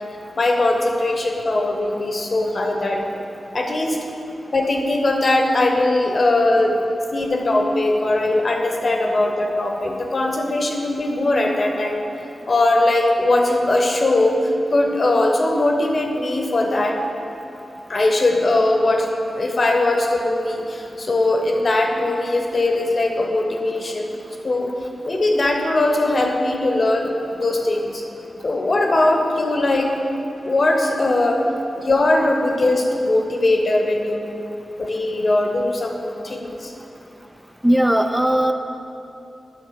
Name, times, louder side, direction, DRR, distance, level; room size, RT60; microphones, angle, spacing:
voice 1, 0.4-3.0 3.5-4.0 4.5-6.8 7.1-12.0 12.5-17.0 17.9-19.1 19.3-24.2 24.4-24.7 25.0-28.0 28.4-29.9 30.4-31.4 31.7-34.4 34.8-36.7, left 2 dB, 55° left, 2 dB, 0.9 m, -20 dB
voice 2, 37.6-38.5, right 1 dB, 10° right, 6 dB, 0.3 m, -17 dB
8.6 x 3.3 x 6.5 m, 2.8 s
cardioid pair, 50°, 0 cm